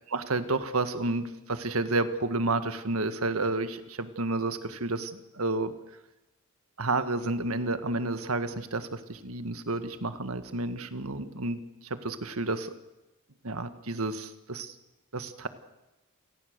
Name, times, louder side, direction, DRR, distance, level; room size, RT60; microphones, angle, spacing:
voice 1, 0.1-5.7 6.8-12.7 13.4-14.7 15.1-15.5, right 2 dB, 75° right, 10 dB, 1.7 m, -31 dB
28.0 x 18.0 x 6.8 m, 0.99 s
head